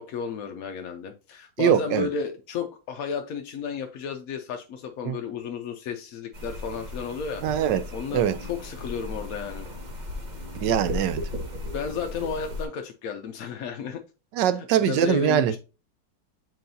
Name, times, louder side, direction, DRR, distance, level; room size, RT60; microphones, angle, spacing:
voice 1, 0.0-7.4 7.9-9.7 11.7-14.0 14.8-15.6, left 6 dB, 70° left, 0.8 m, -33 dB
voice 2, 1.6-2.1 5.0-5.1 7.4-7.8 8.1-8.4 10.5-11.3 14.3-15.5, right 9 dB, 70° right, 1.2 m, -22 dB
sound 1, 6.3-12.7, left 1 dB, 30° right, 0.9 m, -36 dB
7.7 x 4.7 x 2.7 m
omnidirectional pair, 2.1 m